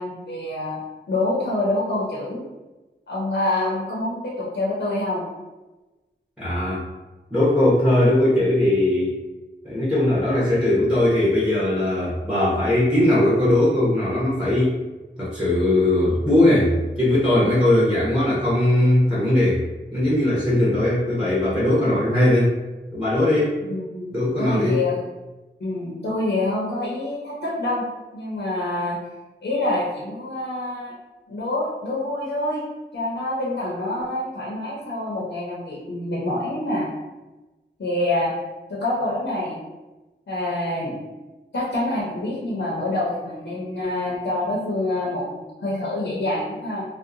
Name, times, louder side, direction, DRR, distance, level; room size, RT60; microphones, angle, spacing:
voice 1, 0.0-2.4 3.1-5.2 23.7-25.0 25.6-27.8 28.1-29.0 29.4-30.9 31.3-32.6 32.9-36.9 37.8-38.3 38.7-39.6 40.3-41.0 41.5-46.8, left 1 dB, 65° left, -6 dB, 0.6 m, -26 dB
voice 2, 6.4-6.8 7.3-9.1 9.6-14.8 15.2-19.6 19.9-22.5 22.9-23.6 24.1-24.8, left 1 dB, 5° right, -8 dB, 0.8 m, -19 dB
2.7 x 2.1 x 2.5 m, 1.1 s
wide cardioid pair, 50°, 20 cm